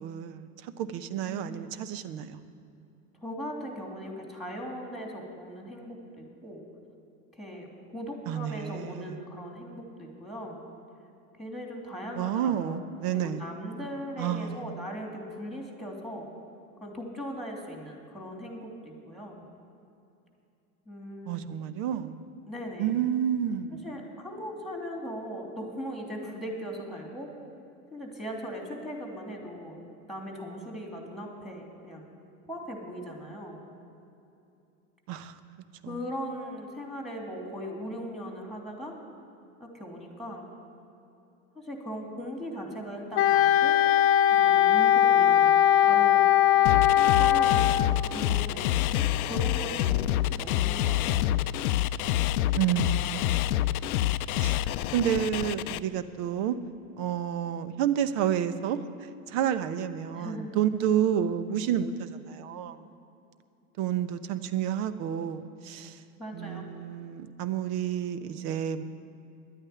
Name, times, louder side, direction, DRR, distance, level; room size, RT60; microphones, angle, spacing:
voice 1, 0.0-2.4 8.3-9.2 12.2-13.5 14.2-14.6 21.3-22.2 22.8-23.8 35.1-35.4 35.8-36.0 52.5-53.5 54.3-54.6 54.9-56.6 57.0-58.8 59.3-62.9 63.8-66.0 66.3-68.8, right 9 dB, 55° right, 12 dB, 0.9 m, -30 dB
voice 2, 1.2-1.8 3.2-6.6 7.3-10.6 11.4-16.3 16.8-19.4 20.9-21.5 22.5-22.9 23.8-27.3 27.9-29.8 30.1-32.0 32.5-33.6 35.8-39.0 39.6-40.5 41.5-43.8 44.3-46.3 46.9-51.3 60.1-60.5 66.2-66.7, equal, ahead, 0 dB, 3.1 m, -39 dB
Wind instrument woodwind instrument, 43.1-48.0, left 11 dB, 30° left, 0.5 m, -20 dB
sound 1, 46.7-55.8, left 13 dB, 75° left, 0.5 m, -27 dB
11.0 x 8.9 x 9.4 m, 2.7 s
hypercardioid pair, 90°, 44 cm